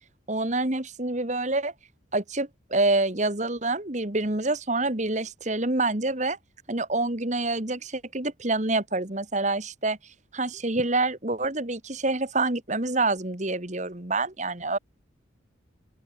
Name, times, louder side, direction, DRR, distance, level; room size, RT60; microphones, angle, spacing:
voice 1, 0.3-1.7 2.1-6.4 6.7-10.0 10.3-14.8, right 2 dB, 35° right, 1.9 m, -27 dB
open air
head